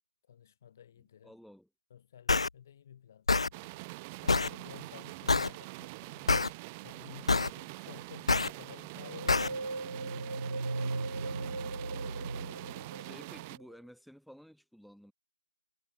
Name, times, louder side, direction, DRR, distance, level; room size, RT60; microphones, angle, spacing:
voice 1, 0.3-1.3 1.9-3.9 4.2-6.3 6.8-10.1, left 9 dB, 30° left, 5.4 m, -53 dB
voice 2, 1.2-1.7 11.2-11.8 13.0-15.1, equal, ahead, 3.6 m, -54 dB
sound 1, 2.3-2.5 3.3-3.5 4.3-4.5 5.3-5.5 6.3-6.5 7.3-7.5 8.3-8.5 9.3-9.5, left 3 dB, 80° left, 0.4 m, -25 dB
sound 2, 3.5-13.6, right 25 dB, 15° right, 1.1 m, -45 dB
sound 3, 9.0-13.6, right 2 dB, 85° right, 0.8 m, -37 dB
figure-of-eight pair, 160°, 3 cm